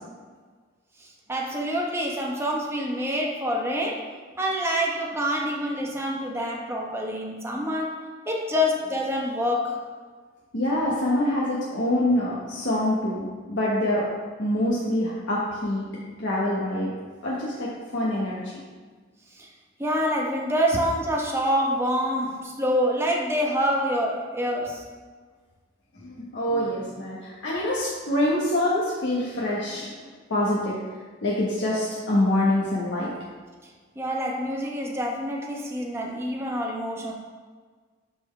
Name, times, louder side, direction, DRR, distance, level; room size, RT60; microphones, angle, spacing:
voice 1, 1.3-4.0 4.4-8.0 8.3-9.8 19.4-19.5 19.8-24.8 34.0-37.1, equal, 15° right, -2 dB, 1.0 m, -26 dB
voice 2, 10.5-14.0 14.4-15.8 16.2-16.9 17.2-18.4 26.0-29.9 30.3-30.8 31.2-33.1, left 1 dB, 65° left, -7 dB, 1.3 m, -25 dB
12.0 x 4.5 x 3.3 m, 1.5 s
head